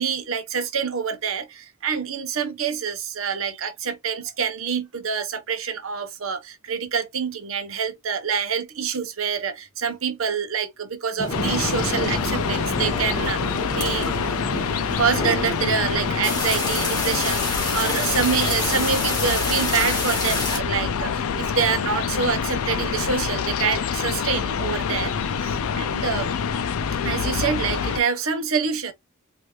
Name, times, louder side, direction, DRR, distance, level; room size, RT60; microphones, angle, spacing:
voice 1, 0.0-14.1 15.0-26.3 27.0-28.9, right 6 dB, 70° right, 0.7 m, -26 dB
sound 1, 11.2-20.6, left 1 dB, 20° left, 1.4 m, -28 dB
sound 2, 11.3-28.0, left 6 dB, 80° left, 0.4 m, -26 dB
3.2 x 2.6 x 2.8 m
head